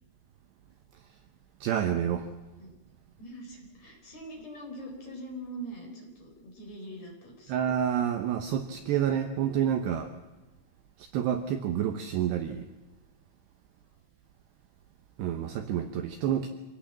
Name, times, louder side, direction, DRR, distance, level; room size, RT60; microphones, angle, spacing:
voice 1, 1.6-2.3 7.5-10.1 11.0-12.7 15.2-16.5, right 9 dB, 75° right, 7 dB, 2.6 m, -28 dB
voice 2, 3.2-7.6, right 1 dB, 35° left, 1 dB, 5.1 m, -43 dB
25.5 x 18.0 x 7.4 m, 1.1 s
omnidirectional pair, 5.9 m